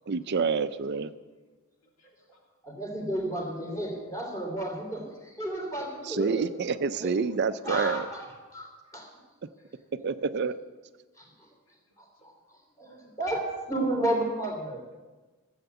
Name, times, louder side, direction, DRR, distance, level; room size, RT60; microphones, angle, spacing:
voice 1, 0.1-1.1 6.0-8.1 10.0-10.5, right 5 dB, 50° right, 12 dB, 0.5 m, -28 dB
voice 2, 1.8-2.5 8.8-9.0 11.7-12.3 12.9-13.1, left 2 dB, 70° left, -1 dB, 3.0 m, -69 dB
voice 3, 2.6-6.5 7.0-7.1 7.6-8.2 8.5-9.1 11.2-11.5 12.0-12.3 12.8-14.9, right 1 dB, 15° left, 0 dB, 2.9 m, -32 dB
15.0 x 7.9 x 8.1 m, 1.3 s
head